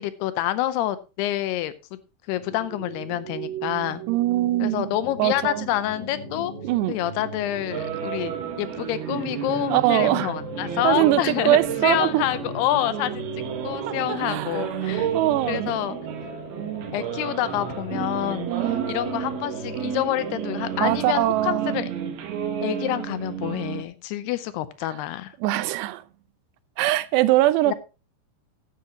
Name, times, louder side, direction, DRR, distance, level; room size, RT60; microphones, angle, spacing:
voice 1, 0.0-2.0 2.3-4.0 4.6-6.5 6.9-8.3 8.6-13.3 13.6-15.1 15.5-16.0 16.9-18.5 18.9-21.9 22.6-25.3 27.7-27.8, left 13 dB, 85° left, 2.7 m, -27 dB
sound 1, 2.3-20.9, right 4 dB, 40° right, 3.5 m, -37 dB
voice 2, 4.1-4.9 5.2-5.7 6.6-7.0 9.7-10.3 10.8-12.3 13.9-15.8 18.5-18.9 20.8-21.9 25.4-26.0 26.8-27.7, right 16 dB, 85° right, 2.8 m, -22 dB
sound 2, 7.7-23.8, right 7 dB, 70° right, 3.4 m, -32 dB
13.0 x 9.7 x 2.9 m
omnidirectional pair, 4.8 m